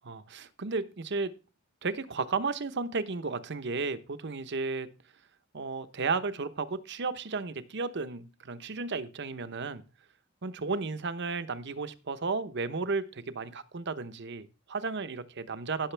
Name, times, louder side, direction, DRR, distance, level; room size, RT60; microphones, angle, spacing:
voice 1, 0.0-1.3 1.8-4.9 5.5-9.8 10.4-15.9, right 4 dB, 60° right, 12 dB, 0.9 m, -33 dB
16.0 x 6.4 x 3.4 m, 0.32 s
head